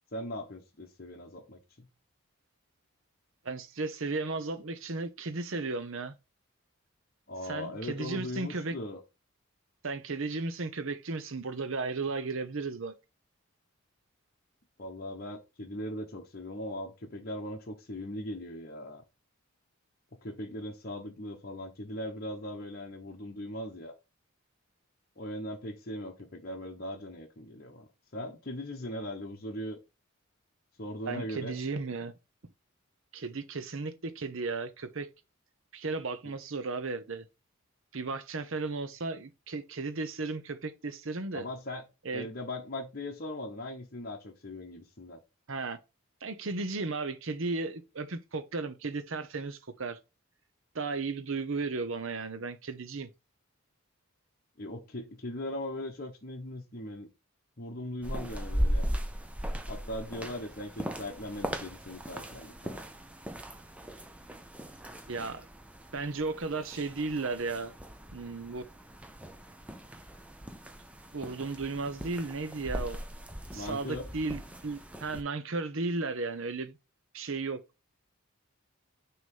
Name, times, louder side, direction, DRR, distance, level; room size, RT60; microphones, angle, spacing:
voice 1, 0.1-1.9 7.3-9.0 14.8-19.0 20.2-23.9 25.2-29.8 30.8-31.6 41.3-41.8 42.1-45.2 54.6-57.1 57.6-58.9 59.7-62.8 73.5-74.1, left 1 dB, 40° left, 0.9 m, -39 dB
voice 2, 3.4-6.2 7.5-8.7 9.8-12.9 31.1-32.1 33.1-35.1 35.7-37.3 37.9-41.5 42.0-42.3 45.5-45.8 46.2-50.0 50.7-53.1 65.1-65.4 65.9-67.7 68.1-68.6 71.1-73.0 73.5-76.8 77.1-77.6, right 3 dB, 60° right, 0.8 m, -35 dB
sound 1, 58.0-75.2, equal, 5° right, 0.5 m, -38 dB
6.2 x 3.0 x 5.5 m
head